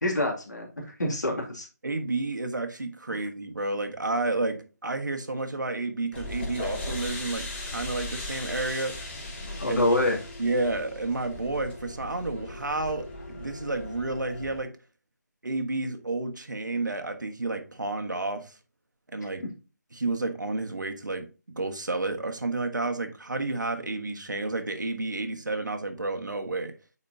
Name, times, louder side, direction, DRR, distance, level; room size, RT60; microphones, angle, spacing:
voice 1, 0.0-1.7 9.6-10.2, left 1 dB, 70° left, 2.3 m, -26 dB
voice 2, 1.8-9.0 9.7-9.9 10.4-14.7 15.4-18.5 19.1-19.4 19.9-21.3 21.5-26.7, right 2 dB, 80° right, 1.4 m, -31 dB
sound 1, 6.1-14.6, left 2 dB, 35° left, 2.7 m, -38 dB
9.5 x 4.3 x 2.7 m
figure-of-eight pair, 155°, 10 cm